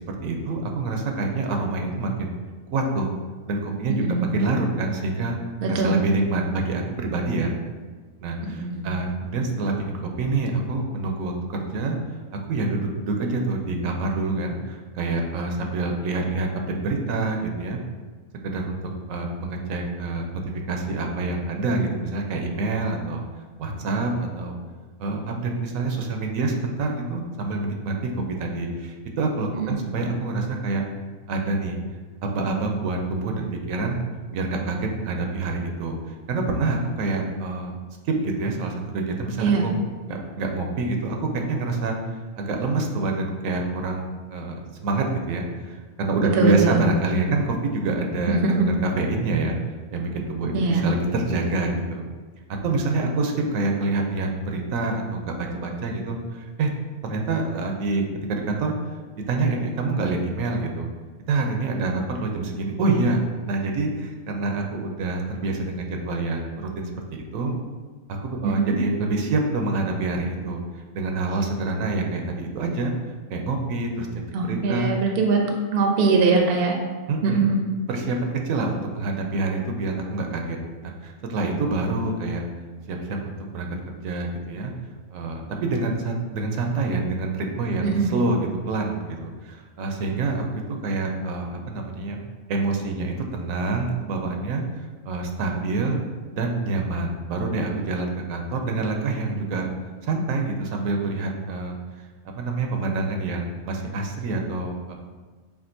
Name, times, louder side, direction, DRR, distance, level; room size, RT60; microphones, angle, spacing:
voice 1, 0.2-2.3 2.7-3.1 3.5-5.4 5.7-7.6 8.2-12.0 12.5-17.8 18.4-18.8 19.1-23.2 23.6-24.6 25.0-30.8 31.3-31.8 32.2-34.0 34.3-36.0 36.3-37.7 38.0-39.8 40.1-49.6 49.9-52.0 52.6-56.7 57.0-58.7 59.3-60.9 61.3-63.2 63.5-67.5 68.2-72.9 73.3-74.1 74.4-74.9 77.1-77.5 77.9-82.5 82.9-84.7 85.1-92.2 92.5-96.0 96.3-99.7 100.0-102.1 102.4-104.9, right 3 dB, 80° right, 2 dB, 1.0 m, -26 dB
voice 2, 5.6-6.0 8.5-8.8 29.6-29.8 39.4-39.6 46.4-46.8 48.3-48.5 50.5-50.8 68.4-68.8 74.3-75.4 75.7-76.8 77.2-77.6 87.9-88.1, right 4 dB, 60° right, 2 dB, 0.7 m, -21 dB
7.0 x 2.5 x 2.6 m, 1.4 s
omnidirectional pair, 1.4 m